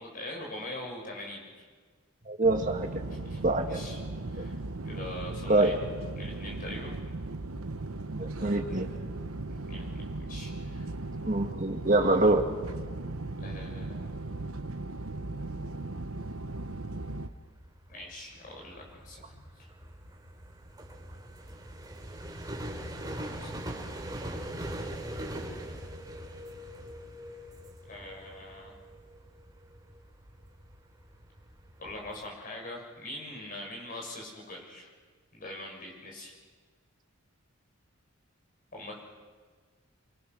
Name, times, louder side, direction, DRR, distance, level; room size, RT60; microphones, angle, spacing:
voice 1, 0.0-1.7 3.2-3.4 3.7-4.0 4.3-4.6 4.9-5.7 6.2-7.0 8.4-8.8 9.5-10.9 13.4-14.1 17.9-19.7 22.7-23.6 27.9-28.7 31.8-34.9 35.3-36.3 38.7-39.0, left 1 dB, 40° left, 0 dB, 7.0 m, -43 dB
voice 2, 2.3-2.9 3.4-3.8 5.5-5.8 8.1-8.9 11.3-12.4, right 2 dB, 35° right, 3 dB, 2.2 m, -25 dB
sound 1, 2.4-17.3, right 2 dB, 85° right, 1.0 m, -37 dB
sound 2, 15.8-32.2, right 1 dB, 20° right, 3.2 m, -42 dB
28.0 x 24.0 x 6.4 m, 1.5 s
head